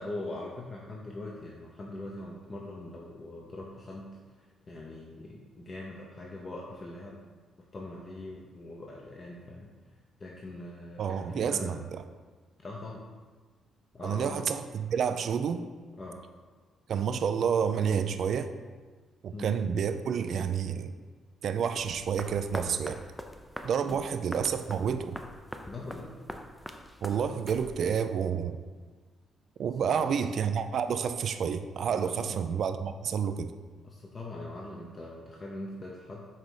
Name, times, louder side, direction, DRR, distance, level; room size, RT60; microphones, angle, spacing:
voice 1, 0.0-7.4 7.7-9.7 10.2-11.8 12.6-13.1 13.9-14.4 16.0-16.2 19.3-19.6 23.8-24.0 25.7-26.1 29.8-30.2 31.9-32.4 33.8-36.3, left 2 dB, 35° left, -2 dB, 0.8 m, -42 dB
voice 2, 11.0-12.0 14.0-15.6 16.9-18.5 19.2-20.9 21.4-23.0 23.6-25.2 27.0-28.6 29.6-33.5, right 7 dB, 60° right, 9 dB, 0.4 m, -29 dB
sound 1, 21.8-28.0, equal, ahead, 0.5 m, -43 dB
5.7 x 3.8 x 4.8 m, 1.4 s
cardioid pair, 90°, 0 cm